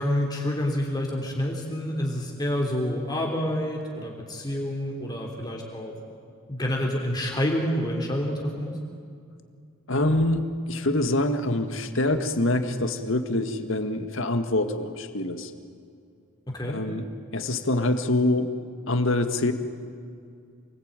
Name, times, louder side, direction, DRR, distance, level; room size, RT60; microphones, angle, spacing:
voice 1, 0.0-6.0 6.5-8.8 16.5-16.8, left 1 dB, 20° left, -1 dB, 3.3 m, -28 dB
voice 2, 9.9-15.5 16.7-18.5 18.9-19.5, left 2 dB, 65° left, 7 dB, 1.8 m, -25 dB
27.5 x 20.5 x 9.0 m, 2.4 s
head